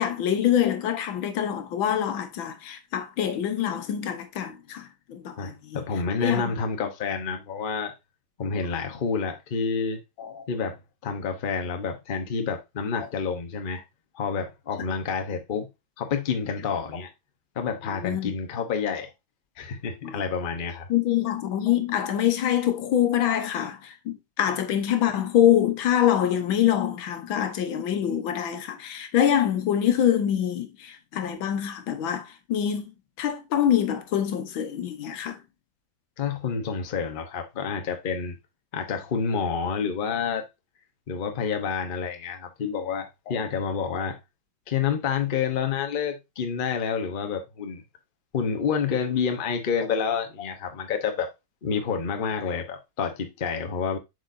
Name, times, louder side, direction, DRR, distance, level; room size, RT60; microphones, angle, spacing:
voice 1, 0.0-5.8 6.2-6.4 10.2-10.4 17.9-18.3 20.0-20.2 20.9-32.9 33.2-35.4 43.3-43.4, left 10 dB, 85° left, 1.7 m, -25 dB
voice 2, 5.4-7.9 8.4-10.0 10.5-10.8 11.0-13.8 14.1-15.7 16.0-17.1 17.5-19.1 19.6-20.9 36.2-38.4 38.7-40.4 41.1-44.2 44.7-47.8 48.3-51.3 51.6-54.0, left 6 dB, 35° left, 0.8 m, -28 dB
7.8 x 5.0 x 2.6 m
omnidirectional pair, 2.1 m